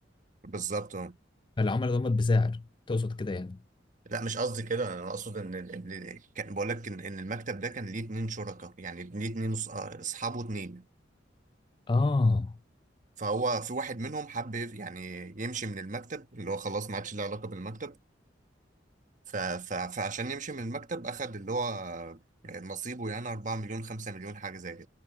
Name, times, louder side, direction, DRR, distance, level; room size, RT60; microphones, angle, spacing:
voice 1, 0.4-1.2 4.0-10.9 13.2-18.0 19.3-24.9, right 3 dB, 45° right, 1.3 m, -35 dB
voice 2, 1.6-3.6 11.9-12.5, left 3 dB, 25° left, 0.4 m, -26 dB
head